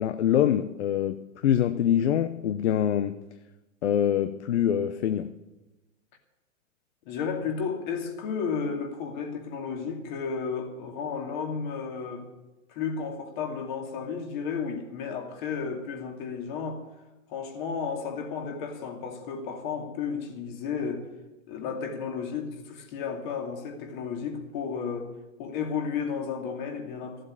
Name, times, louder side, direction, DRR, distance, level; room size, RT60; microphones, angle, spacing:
voice 1, 0.0-3.2 3.8-5.3, left 10 dB, 55° left, 0.8 m, -25 dB
voice 2, 7.1-12.3 12.7-16.8 17.3-21.1 21.5-25.1 25.4-27.2, left 6 dB, 35° left, 2.5 m, -33 dB
14.5 x 7.7 x 9.7 m
hypercardioid pair, 150°, 40 cm